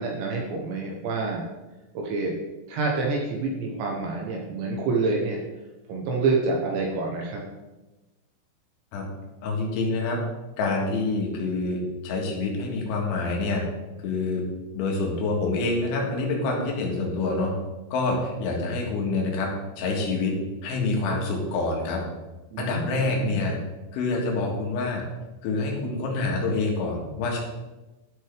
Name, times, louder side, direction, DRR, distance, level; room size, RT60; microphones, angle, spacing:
voice 1, 0.0-1.4 1.9-2.3 2.7-5.4 5.9-7.4 22.5-23.4, right 3 dB, 75° right, -1 dB, 3.1 m, -27 dB
voice 2, 9.4-10.2 10.6-13.6 14.0-14.4 14.7-17.5 17.9-19.5 19.8-22.0 22.6-23.6 23.9-25.0 25.4-27.4, left 3 dB, 80° left, 0 dB, 3.9 m, -26 dB
12.0 x 6.3 x 3.4 m, 1.1 s
omnidirectional pair, 5.5 m